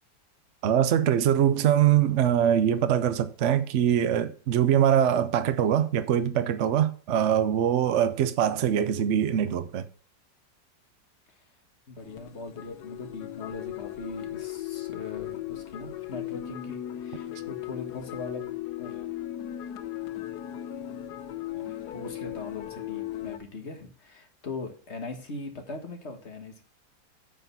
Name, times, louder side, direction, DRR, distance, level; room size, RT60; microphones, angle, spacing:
voice 1, 0.6-9.8, right 10 dB, 65° right, 0.7 m, -23 dB
voice 2, 11.9-18.5 18.8-19.1 21.5-26.6, left 3 dB, 40° left, 1.7 m, -40 dB
sound 1, 12.0-23.4, left 13 dB, 70° left, 1.2 m, -37 dB
9.1 x 5.3 x 5.7 m
omnidirectional pair, 1.9 m